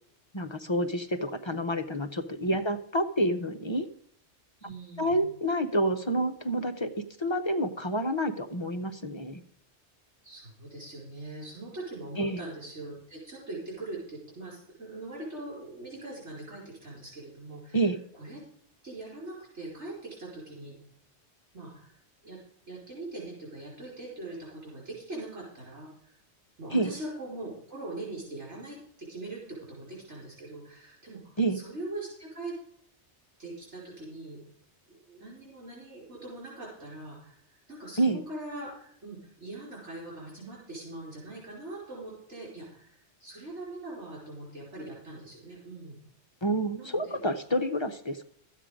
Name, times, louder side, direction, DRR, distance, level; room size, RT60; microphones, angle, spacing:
voice 1, 0.3-3.9 4.6-4.7 5.0-6.9 7.2-9.4 12.2-12.4 17.7-18.0 26.7-26.9 31.4-31.6 38.0-38.2 46.4-48.2, right 1 dB, 30° left, 6 dB, 0.6 m, -28 dB
voice 2, 4.6-5.3 10.2-17.8 18.1-18.4 18.8-20.8 21.5-22.0 22.2-22.4 22.7-26.1 26.6-32.6 33.4-34.4 34.9-46.0 46.8-47.2, right 2 dB, 90° right, -5 dB, 5.1 m, -42 dB
12.5 x 8.3 x 5.0 m, 0.67 s
omnidirectional pair, 1.2 m